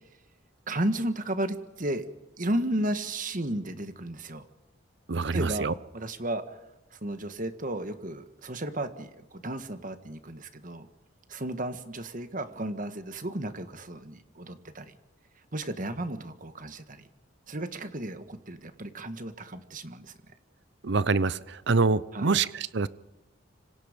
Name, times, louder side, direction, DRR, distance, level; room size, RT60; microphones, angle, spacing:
voice 1, 0.7-2.1 2.4-4.4 5.3-6.6 6.9-10.9 11.3-14.9 15.5-17.1 17.5-20.2 22.1-22.4, right 1 dB, 40° right, 9 dB, 1.7 m, -33 dB
voice 2, 5.1-5.7 20.8-22.9, right 4 dB, 60° right, 17 dB, 0.7 m, -25 dB
27.5 x 25.5 x 5.3 m, 1.1 s
head